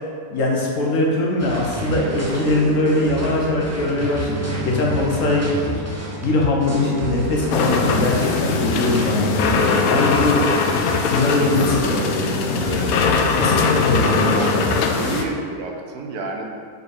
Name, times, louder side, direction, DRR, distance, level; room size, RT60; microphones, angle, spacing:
voice 1, 0.3-5.8 6.2-10.4 11.0-13.0 13.4-14.8, left 2 dB, 60° left, -2 dB, 1.4 m, -22 dB
sound 1, 1.4-15.2, equal, 20° right, 0.4 m, -32 dB
sound 2, 1.8-14.4, right 3 dB, 65° right, 0.7 m, -30 dB
sound 3, 7.5-15.2, left 5 dB, 75° left, 1.0 m, -21 dB
voice 2, 14.0-16.5, right 3 dB, 85° right, 1 dB, 1.3 m, -30 dB
4.9 x 4.7 x 4.9 m, 2.2 s
omnidirectional pair, 1.6 m